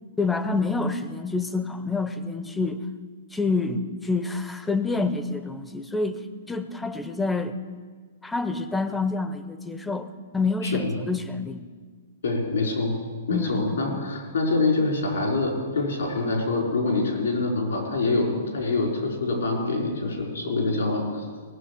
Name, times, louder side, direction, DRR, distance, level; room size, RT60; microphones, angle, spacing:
voice 1, 0.2-2.8 3.3-7.6 8.2-10.1 10.3-11.7 13.3-14.1, left 3 dB, 5° left, 10 dB, 0.7 m, -27 dB
voice 2, 10.6-10.9 12.2-13.0 13.3-21.2, left 3 dB, 85° left, -1 dB, 4.9 m, -25 dB
18.5 x 6.7 x 8.3 m, 1.5 s
hypercardioid pair, 140°, 0 cm